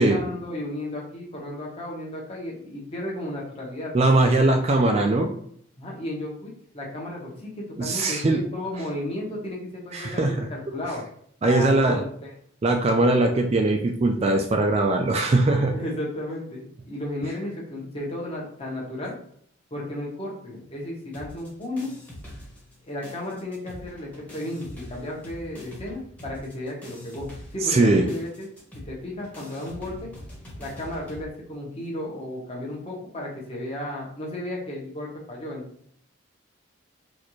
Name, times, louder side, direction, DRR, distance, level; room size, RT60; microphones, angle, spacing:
voice 1, 0.0-3.9 5.8-11.0 11.4-12.3 15.7-19.1 19.7-21.9 22.9-28.5 28.7-30.1 30.6-35.6, left 1 dB, 30° left, -3 dB, 1.0 m, -34 dB
voice 2, 3.9-5.3 7.8-8.4 9.9-10.3 11.4-12.0 12.6-15.7 27.7-28.0, right 2 dB, 30° right, 4 dB, 0.3 m, -20 dB
sound 1, 21.1-22.8 23.0-31.2, left 1 dB, 5° left, 1.0 m, -43 dB
4.1 x 2.5 x 3.1 m, 0.65 s
head